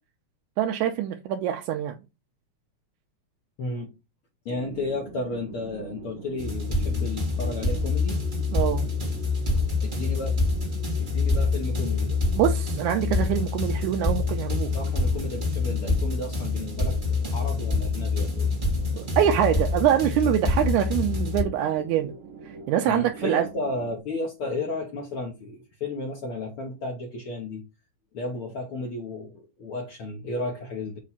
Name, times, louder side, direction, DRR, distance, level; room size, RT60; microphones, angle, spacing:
voice 1, 0.6-2.0 8.5-8.9 12.3-14.7 19.0-22.1 22.7-23.5, right 10 dB, 90° right, 2.0 m, -24 dB
voice 2, 3.6-3.9 4.4-8.2 9.8-10.3 11.0-12.2 14.6-17.0 17.3-18.5 22.9-27.6 28.1-31.0, left 2 dB, 60° left, 1.6 m, -33 dB
sound 1, 4.5-24.0, right 6 dB, 75° right, 2.3 m, -43 dB
sound 2, 6.4-21.4, left 3 dB, 25° right, 1.0 m, -26 dB
7.2 x 2.4 x 5.6 m
omnidirectional pair, 3.3 m